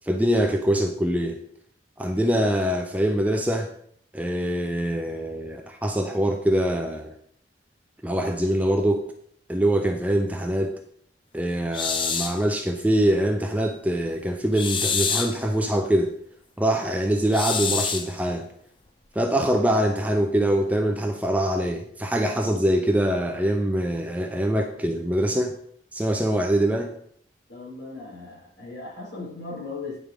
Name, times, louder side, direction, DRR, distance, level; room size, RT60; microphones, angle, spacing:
voice 1, 0.0-1.4 2.0-3.7 4.1-7.1 8.0-9.1 9.5-10.7 11.3-16.1 16.6-18.5 19.1-25.5 25.9-26.9, right 1 dB, 10° right, 4 dB, 0.6 m, -24 dB
sound 1, 11.7-12.4 14.5-15.4 17.3-18.1, left 6 dB, 25° left, 0.7 m, -26 dB
voice 2, 27.5-30.0, left 3 dB, 70° left, -4 dB, 4.4 m, -37 dB
9.6 x 5.2 x 6.1 m, 0.65 s
head